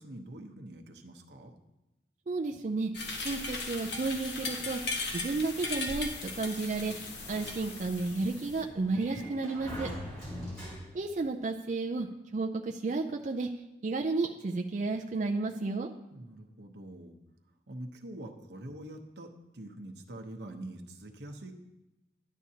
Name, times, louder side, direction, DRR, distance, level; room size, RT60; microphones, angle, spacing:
voice 1, 0.0-1.5 10.2-11.0 16.1-17.1 17.7-21.5, right 1 dB, 80° right, 4 dB, 0.9 m, -45 dB
voice 2, 2.3-2.9 3.2-4.8 5.1-9.9 10.9-12.1 12.3-13.5 13.8-15.9, right 3 dB, 45° right, 2 dB, 0.4 m, -32 dB
sound 1, 2.9-8.6, left 3 dB, 80° left, 1.1 m, -38 dB
Sliding door, 6.5-11.2, equal, 25° left, 3.1 m, -44 dB
11.0 x 8.4 x 2.8 m, 0.98 s
head